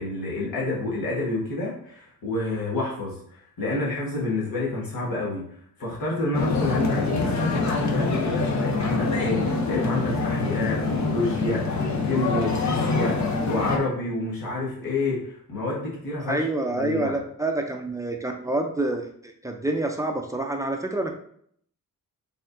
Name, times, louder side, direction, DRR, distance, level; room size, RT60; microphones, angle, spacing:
voice 1, 0.0-5.4 5.8-16.4 16.8-17.1, left 2 dB, 75° left, -5 dB, 1.4 m, -29 dB
sound 1, 6.3-13.8, left 3 dB, 50° left, 0.7 m, -25 dB
voice 2, 16.2-21.1, right 2 dB, 10° right, 2 dB, 0.4 m, -27 dB
4.5 x 3.5 x 2.6 m, 0.64 s
cardioid pair, 115°, 36 cm